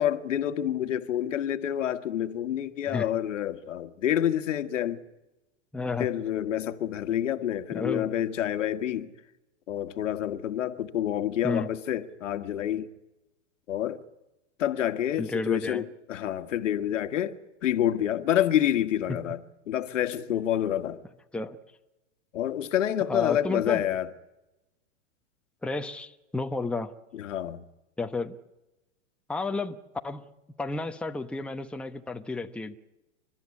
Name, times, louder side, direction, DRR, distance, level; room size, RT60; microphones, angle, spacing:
voice 1, 0.0-5.0 6.0-9.1 9.7-12.9 13.7-14.0 14.6-17.4 17.6-19.4 19.7-21.0 22.3-24.1 27.1-27.6, left 11 dB, 75° left, 1.7 m, -28 dB
voice 2, 5.7-6.1 7.7-8.1 11.4-11.7 15.2-15.9 19.1-19.2 21.3-21.6 23.1-23.8 25.6-26.9 28.0-28.4 29.3-29.8 30.0-30.3 30.6-32.8, left 3 dB, 5° left, 1.0 m, -31 dB
30.0 x 13.0 x 9.7 m
hypercardioid pair, 125°, 37 cm